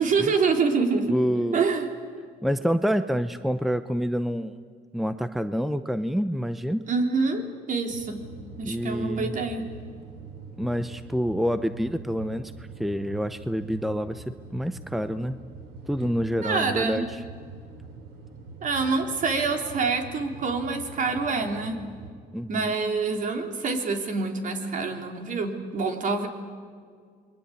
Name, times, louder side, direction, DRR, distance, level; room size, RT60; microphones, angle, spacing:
voice 1, 0.0-1.1 1.5-1.9 6.9-8.2 8.6-9.7 16.4-17.1 18.6-21.8 22.5-26.3, right 4 dB, 50° right, 5 dB, 3.5 m, -26 dB
voice 2, 1.1-1.6 2.4-4.5 4.9-6.8 8.7-9.3 10.6-12.5 12.8-15.4 15.9-17.2 22.3-22.7, equal, ahead, 11 dB, 0.7 m, -27 dB
sound 1, 7.9-22.1, right 4 dB, 80° right, 3.6 m, -44 dB
28.5 x 22.0 x 8.5 m, 2.1 s
cardioid pair, 110°, 17 cm